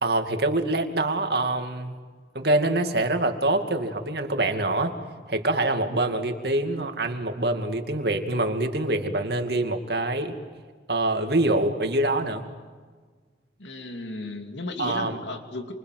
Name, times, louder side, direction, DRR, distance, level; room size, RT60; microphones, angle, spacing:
voice 1, 0.0-2.0 2.3-5.0 5.3-10.4 10.9-12.4 14.8-15.2, right 2 dB, 60° right, 5 dB, 2.5 m, -25 dB
voice 2, 13.6-15.7, left 2 dB, 80° left, 5 dB, 2.8 m, -35 dB
28.5 x 26.5 x 7.8 m, 1.5 s
head